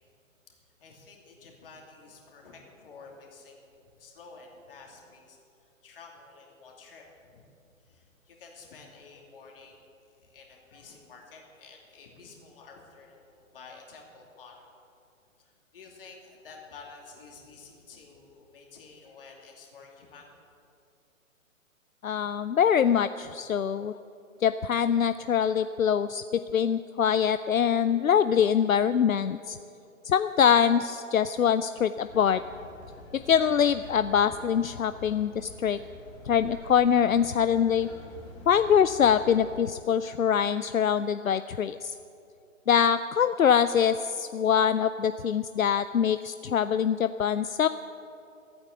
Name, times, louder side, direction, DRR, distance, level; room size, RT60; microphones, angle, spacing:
voice 1, 0.5-5.4 5.8-7.4 7.8-9.9 10.2-14.7 15.4-20.3, left 4 dB, 40° left, 0 dB, 2.7 m, -51 dB
voice 2, 22.0-23.9 24.4-29.6 30.1-32.4 33.1-35.8 36.3-37.9 38.5-41.9 42.7-47.7, left 8 dB, 80° left, 13 dB, 0.5 m, -24 dB
sound 1, 32.0-39.6, left 3 dB, 25° left, 2.3 m, -47 dB
13.5 x 8.8 x 7.9 m, 2.6 s
figure-of-eight pair, 130°, 41 cm